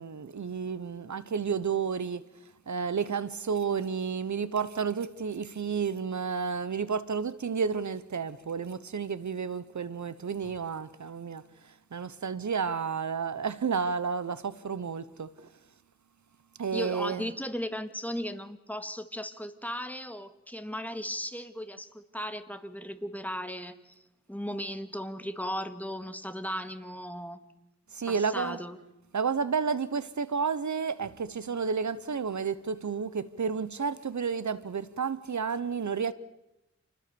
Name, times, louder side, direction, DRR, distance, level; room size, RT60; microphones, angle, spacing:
voice 1, 0.0-2.2 2.7-11.4 11.9-15.3 16.6-17.3 27.9-28.6 29.1-36.1, right 6 dB, 80° right, 1.0 m, -31 dB
voice 2, 16.7-24.0 24.3-27.4 28.1-28.8, equal, 5° left, 1.9 m, -36 dB
28.5 x 20.5 x 7.0 m
wide cardioid pair, 80°, 29 cm